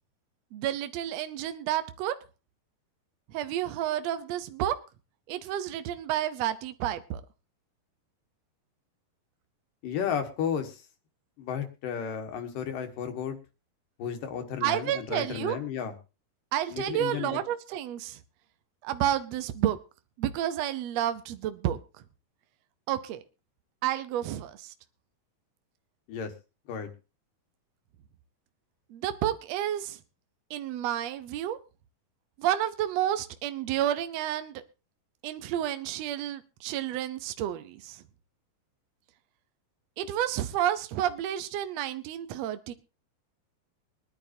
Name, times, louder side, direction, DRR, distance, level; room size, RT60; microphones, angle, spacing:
voice 1, 0.5-2.1 3.3-4.7 5.3-7.2 14.6-15.6 16.5-18.2 18.8-19.8 20.2-21.8 22.9-23.2 23.8-24.7 28.9-30.0 30.5-31.6 32.4-34.6 35.2-38.0 40.0-42.7, right 11 dB, 80° right, 1.5 m, -30 dB
voice 2, 9.8-10.9 11.4-13.4 14.0-15.9 16.7-17.4 26.1-26.3 26.7-26.9, left 7 dB, 75° left, 3.1 m, -33 dB
23.5 x 10.0 x 2.7 m
omnidirectional pair, 4.0 m